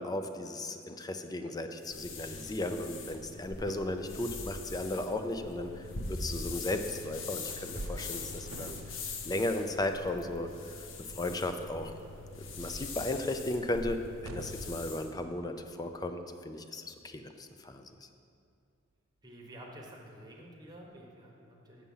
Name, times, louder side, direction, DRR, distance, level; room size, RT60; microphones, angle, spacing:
voice 1, 0.0-5.8 6.1-8.8 9.2-10.7 11.1-11.9 12.4-18.1, left 1 dB, 20° left, 7 dB, 0.5 m, -35 dB
sound 1, 1.8-15.1, left 3 dB, 75° left, 0.8 m, -42 dB
sound 2, 3.6-5.0 6.5-6.6 7.0-10.0 10.3-11.4 11.7-12.0 13.3-13.6 14.1-17.0 17.5-17.7 18.3-18.4 18.9-19.0 19.2-19.3 19.7-19.8 20.9-21.0, right 3 dB, 85° right, 0.5 m, -53 dB
sound 3, 7.7-10.7, right 1 dB, 40° right, 0.6 m, -46 dB
voice 2, 19.2-21.9, right 1 dB, 20° right, -1 dB, 1.2 m, -50 dB
7.4 x 6.9 x 5.5 m, 2.4 s
head